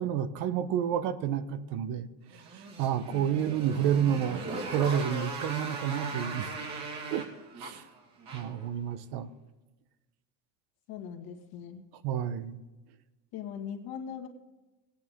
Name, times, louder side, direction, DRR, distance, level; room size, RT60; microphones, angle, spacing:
voice 1, 0.0-2.1 2.3-4.4 4.7-6.5 7.1-7.3 7.6-7.8 8.3-9.3 12.0-12.6, right 9 dB, 75° right, 12 dB, 1.0 m, -30 dB
Motorcycle, 2.3-8.7, right 3 dB, 45° right, 2.6 m, -38 dB
voice 2, 3.1-3.4 10.9-11.8 13.3-14.3, left 8 dB, 65° left, 4 dB, 1.9 m, -40 dB
17.5 x 9.4 x 3.6 m, 1.1 s
cardioid pair, 150°, 39 cm